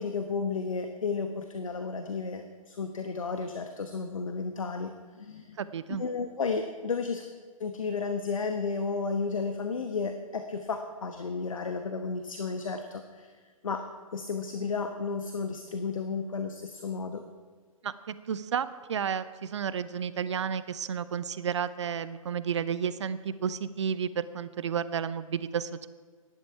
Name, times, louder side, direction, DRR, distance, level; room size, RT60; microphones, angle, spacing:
voice 1, 0.0-5.6 6.0-7.2 7.6-13.3 13.6-13.8 14.1-17.2, left 4 dB, 65° left, 6 dB, 1.1 m, -33 dB
voice 2, 5.6-6.0 17.8-25.9, right 7 dB, 55° right, 15 dB, 0.7 m, -32 dB
16.0 x 11.0 x 4.7 m, 1.6 s
figure-of-eight pair, 125°, 18 cm